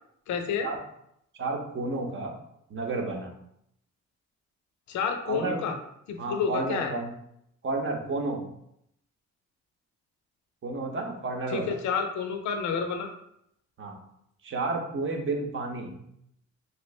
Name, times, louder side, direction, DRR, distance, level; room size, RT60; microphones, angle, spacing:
voice 1, 0.3-0.7 4.9-5.8 6.1-6.9 11.5-13.1, left 6 dB, 70° left, 5 dB, 0.6 m, -29 dB
voice 2, 1.4-2.3 2.7-3.3 5.3-5.6 6.2-7.1 7.6-8.5 10.6-11.7 13.8-14.0 14.4-16.0, right 3 dB, 40° right, 3 dB, 0.7 m, -31 dB
3.1 x 2.6 x 3.1 m, 0.75 s
cardioid pair, 90°, 30 cm